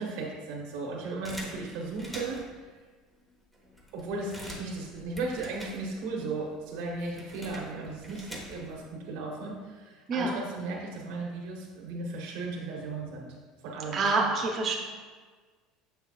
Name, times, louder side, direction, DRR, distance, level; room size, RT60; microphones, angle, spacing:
voice 1, 0.0-2.4 3.9-13.3 13.6-14.0, right 3 dB, 75° right, -2 dB, 1.1 m, -36 dB
sound 1, 1.2-2.6 3.2-3.3 3.5-6.2 6.5-8.8, equal, 5° left, 1.1 m, -45 dB
voice 2, 10.1-10.4 13.9-14.8, right 3 dB, 35° right, 0 dB, 0.8 m, -27 dB
6.8 x 5.8 x 2.4 m, 1.5 s
supercardioid pair, 130°, 0 cm